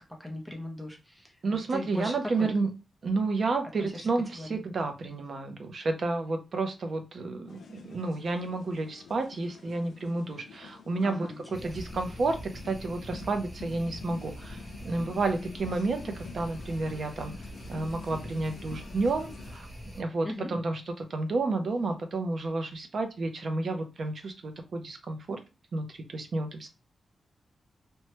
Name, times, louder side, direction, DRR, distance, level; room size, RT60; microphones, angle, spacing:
voice 1, 0.2-1.4 1.7-2.5 3.8-4.1 4.4-4.6 11.0-11.8 20.2-20.5, left 1 dB, ahead, 1 dB, 0.6 m, -38 dB
voice 2, 1.4-2.7 3.0-11.3 11.6-12.4 12.6-17.3 17.7-19.7 19.9-25.4 25.7-26.7, right 3 dB, 50° right, 6 dB, 0.6 m, -31 dB
sound 1, 7.5-19.6, left 5 dB, 85° left, 0.4 m, -48 dB
sound 2, 11.5-20.0, equal, 20° right, 0.9 m, -44 dB
3.0 x 2.2 x 2.9 m, 0.29 s
wide cardioid pair, 150°, 0 cm